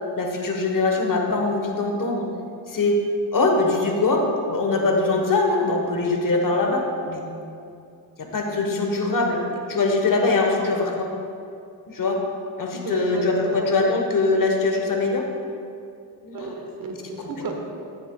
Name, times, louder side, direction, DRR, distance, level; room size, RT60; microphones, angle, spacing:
voice 1, 0.2-2.3 2.7-3.0 3.3-7.2 8.2-11.1 11.9-12.2 12.6-15.3 16.2-16.5, left 3 dB, 40° left, 2 dB, 1.2 m, -22 dB
voice 2, 12.8-13.7 16.3-17.6, right 4 dB, 45° right, 2 dB, 1.3 m, -32 dB
13.0 x 7.1 x 2.3 m, 2.5 s
supercardioid pair, 70°, 48 cm